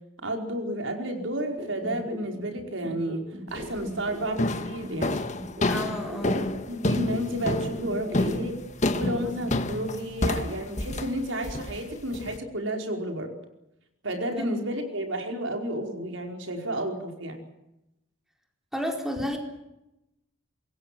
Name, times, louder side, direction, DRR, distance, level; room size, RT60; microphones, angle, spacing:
voice 1, 0.2-5.2 6.2-8.6 8.9-13.3 14.0-17.4, right 1 dB, 80° right, 4 dB, 5.0 m, -31 dB
sound 1, 1.6-4.5 4.8-8.5 8.8-9.5, equal, 45° right, 6.4 m, -39 dB
sound 2, 3.5-3.9 4.4-12.4, left 1 dB, 40° left, 1.6 m, -29 dB
voice 2, 5.7-6.6 14.3-14.5 18.7-19.4, equal, ahead, 2 dB, 4.6 m, -32 dB
26.0 x 22.0 x 7.7 m, 0.91 s
head